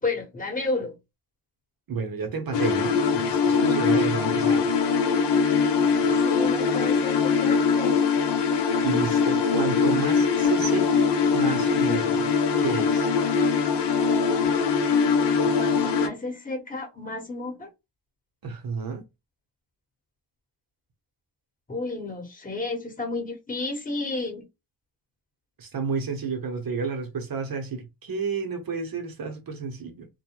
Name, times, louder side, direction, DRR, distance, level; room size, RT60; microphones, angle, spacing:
voice 1, 0.0-0.9 6.2-8.1 15.5-17.7 21.7-24.4, left 2 dB, 15° left, 1.1 m, -32 dB
voice 2, 1.9-4.7 8.8-12.3 12.6-13.1 18.4-19.0 25.6-30.1, right 5 dB, 45° right, 0.8 m, -31 dB
sound 1, 2.5-16.1, left 5 dB, 60° left, 0.7 m, -22 dB
2.2 x 2.1 x 2.9 m
cardioid pair, 75°, 47 cm